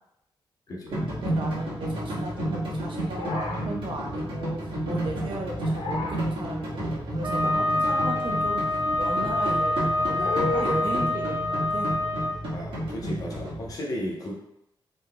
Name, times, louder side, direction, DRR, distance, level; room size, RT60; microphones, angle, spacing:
voice 1, 0.9-11.4 11.7-11.9, right 2 dB, 65° right, 0 dB, 0.8 m, -36 dB
sound 1, 0.9-13.7, right 1 dB, 90° right, 1.5 m, -31 dB
sound 2, 3.1-3.7 5.6-6.2 10.1-10.8, left 2 dB, 80° left, 0.5 m, -31 dB
Wind instrument woodwind instrument, 7.2-12.4, left 2 dB, 40° right, 0.4 m, -26 dB
voice 2, 12.5-14.3, equal, 45° left, -2 dB, 0.9 m, -34 dB
4.0 x 3.5 x 2.2 m, 0.79 s
wide cardioid pair, 155°, 9 cm